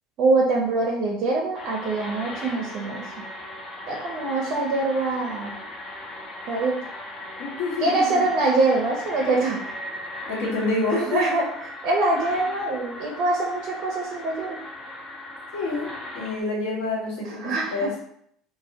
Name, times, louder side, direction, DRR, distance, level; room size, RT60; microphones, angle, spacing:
voice 1, 0.2-3.0 3.9-5.5 6.5-6.7 7.8-9.7 10.9-11.5 11.8-14.6 17.2-17.9, right 2 dB, 60° right, -1 dB, 0.4 m, -24 dB
sound 1, 1.5-16.4, left 1 dB, 45° left, 0.6 m, -38 dB
voice 2, 7.4-8.2 10.3-11.3 15.5-18.0, left 2 dB, 75° left, -4 dB, 0.9 m, -27 dB
2.1 x 2.1 x 2.7 m, 0.69 s
hypercardioid pair, 70°, 0 cm